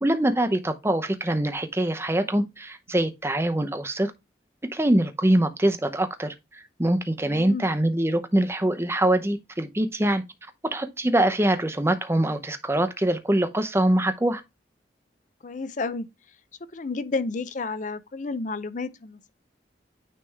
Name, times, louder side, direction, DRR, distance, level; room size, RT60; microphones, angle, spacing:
voice 1, 0.0-4.1 4.7-10.2 10.6-14.4, right 1 dB, 15° right, 0.7 m, -24 dB
voice 2, 7.2-7.7 15.4-16.1 16.7-19.3, left 3 dB, 45° left, 0.5 m, -31 dB
9.5 x 3.3 x 3.4 m
head